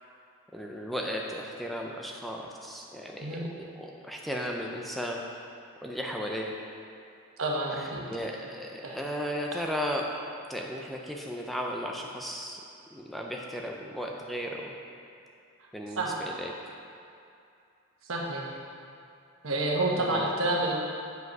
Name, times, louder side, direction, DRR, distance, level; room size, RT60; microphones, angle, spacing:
voice 1, 0.5-5.2 5.8-6.5 7.8-10.0 10.5-12.6 12.9-14.8 15.7-16.7 19.9-20.3, equal, ahead, -1 dB, 0.4 m, -35 dB
voice 2, 7.4-8.1 8.8-9.0 16.0-16.2 18.1-18.5 19.4-20.7, right 2 dB, 70° right, -2 dB, 1.2 m, -29 dB
8.0 x 5.2 x 5.3 m, 2.5 s
head